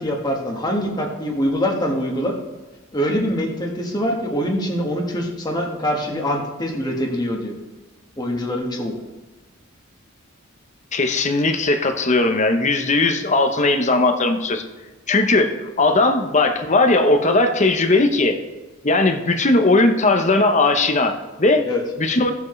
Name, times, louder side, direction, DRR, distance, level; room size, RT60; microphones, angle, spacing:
voice 1, 0.0-2.3 2.9-7.5 8.2-9.0 21.7-21.8, equal, 20° left, 0 dB, 1.6 m, -24 dB
voice 2, 10.9-14.6 15.1-18.4 18.8-21.7 22.0-22.3, left 2 dB, 35° left, 6 dB, 0.9 m, -18 dB
17.0 x 7.2 x 3.2 m, 1.2 s
head